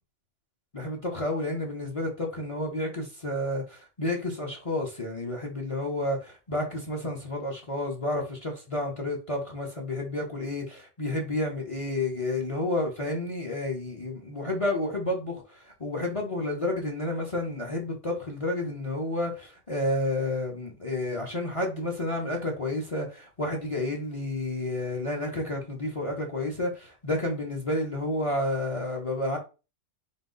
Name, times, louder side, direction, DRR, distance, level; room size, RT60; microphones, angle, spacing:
voice 1, 0.7-29.4, left 1 dB, 30° left, 0.9 m, -30 dB
3.7 x 2.7 x 3.9 m
omnidirectional pair, 1.3 m